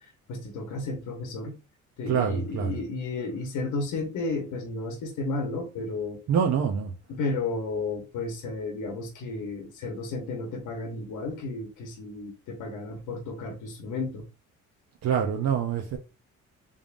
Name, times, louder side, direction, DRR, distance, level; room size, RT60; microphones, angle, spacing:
voice 1, 0.0-1.6 2.0-6.2 7.1-14.3, left 3 dB, 85° left, 0.9 m, -33 dB
voice 2, 2.1-2.7 6.3-6.9 15.0-16.0, right 7 dB, 60° right, 0.6 m, -25 dB
3.6 x 3.5 x 2.4 m
cardioid pair, 90°, 30 cm